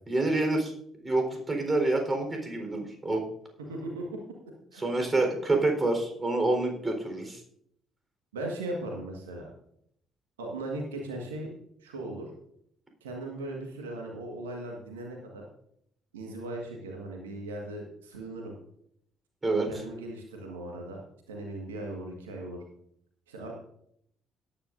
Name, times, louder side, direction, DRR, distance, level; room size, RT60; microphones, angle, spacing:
voice 1, 0.1-0.7 1.0-3.2 4.8-7.4 19.4-19.8, right 2 dB, 25° right, 3 dB, 4.1 m, -27 dB
voice 2, 3.7-4.0 4.7-4.8 8.3-9.5 10.4-11.5 11.8-12.3 13.0-15.4 16.1-18.5 19.7-21.0 21.3-22.6 23.3-23.5, right 2 dB, 80° right, 0 dB, 1.6 m, -38 dB
17.5 x 10.0 x 2.6 m, 0.72 s
figure-of-eight pair, 45°, 0 cm